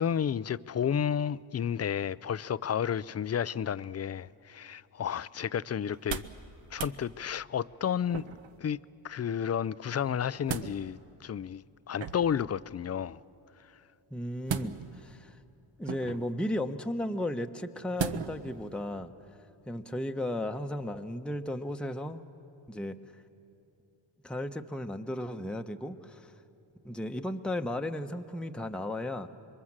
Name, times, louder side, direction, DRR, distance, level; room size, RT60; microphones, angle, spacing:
voice 1, 0.0-6.2 6.7-8.2 8.6-13.2, left 8 dB, 30° left, 0.5 m, -32 dB
sound 1, 5.9-6.4 6.7-7.0 8.1-8.6 10.0-10.7 12.0-12.4 14.4-15.1 15.8-16.3 18.0-18.5 18.9-19.0, right 7 dB, 65° right, 1.0 m, -36 dB
voice 2, 14.1-15.4 15.8-19.4 19.7-22.3 22.7-23.0 24.2-26.3 26.8-29.3, left 1 dB, ahead, 0.9 m, -35 dB
26.0 x 22.5 x 7.4 m
cardioid pair, 60°, 49 cm